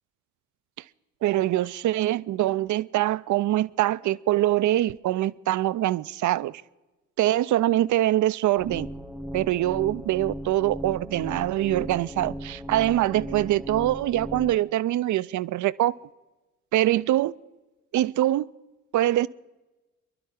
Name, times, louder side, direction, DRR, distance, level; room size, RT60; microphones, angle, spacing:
voice 1, 1.2-6.6 7.2-8.9 9.3-15.9 16.7-17.3 17.9-18.5 18.9-19.3, right 14 dB, 45° right, 0.5 m, -24 dB
sound 1, 8.6-14.6, equal, ahead, 0.6 m, -37 dB
25.0 x 11.5 x 3.7 m
hypercardioid pair, 55°, 41 cm